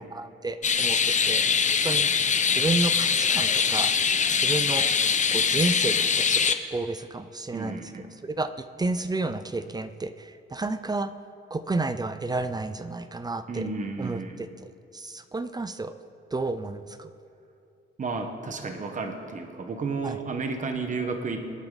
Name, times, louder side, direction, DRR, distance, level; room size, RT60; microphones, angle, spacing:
voice 1, 0.0-2.1 2.5-3.9 4.4-4.9 5.3-7.8 8.1-8.5 8.8-11.1 11.5-13.6 14.0-15.9 16.3-17.1 20.0-20.2, right 3 dB, 20° right, 11 dB, 0.5 m, -31 dB
sound 1, 0.6-6.5, left 6 dB, 35° left, 0.7 m, -23 dB
voice 2, 7.5-8.1 13.5-14.4 18.0-21.5, right 4 dB, 40° right, 5 dB, 1.3 m, -32 dB
26.5 x 8.9 x 4.0 m, 2.6 s
cardioid pair, 110°, 20 cm